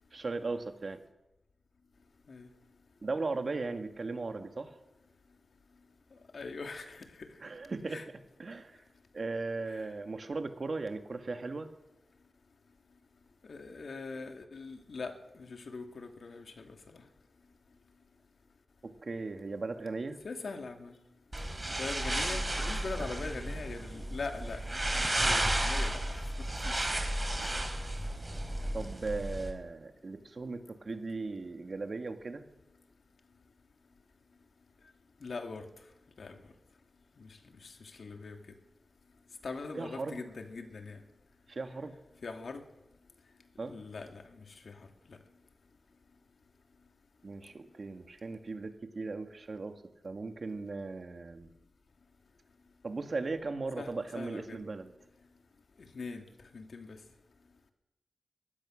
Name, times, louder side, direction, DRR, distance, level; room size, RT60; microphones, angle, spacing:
voice 1, 0.1-1.0 3.0-4.7 7.4-8.0 8.4-8.8 9.1-11.7 18.8-20.2 28.7-32.5 39.7-40.2 41.5-41.9 43.6-43.8 47.2-51.5 52.8-54.9, right 3 dB, 50° right, 6 dB, 2.0 m, -37 dB
voice 2, 6.3-7.3 7.9-8.1 9.7-9.9 13.5-17.0 20.2-20.9 21.7-26.2 26.6-27.0 27.4-27.6 35.2-35.7 36.2-36.4 37.2-37.3 37.6-38.4 39.4-41.0 42.2-42.6 43.6-44.8 45.1-45.2 53.8-54.6 55.9-56.2 56.5-57.0, left 4 dB, 70° left, 4 dB, 2.6 m, -42 dB
sound 1, 21.3-29.5, right 1 dB, 20° right, 3.8 m, -33 dB
23.0 x 18.5 x 6.5 m, 0.93 s
wide cardioid pair, 130°, 0 cm